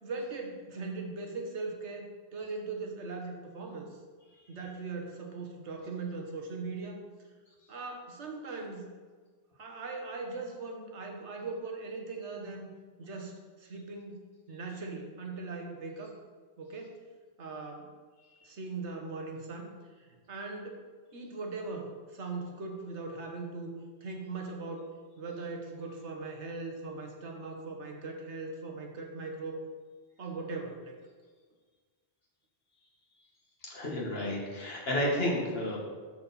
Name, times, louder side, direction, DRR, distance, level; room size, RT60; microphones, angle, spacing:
voice 1, 0.0-3.9 4.5-7.0 7.7-8.9 9.6-12.7 13.0-14.2 14.5-16.2 16.6-17.0 17.4-17.9 18.4-20.8 21.1-23.7 24.0-24.9 25.2-29.6 30.2-31.0, right 3 dB, 90° right, 2 dB, 1.4 m, -40 dB
voice 2, 33.6-35.8, left 1 dB, 60° left, -2 dB, 1.8 m, -31 dB
12.5 x 4.3 x 4.1 m, 1.5 s
omnidirectional pair, 1.1 m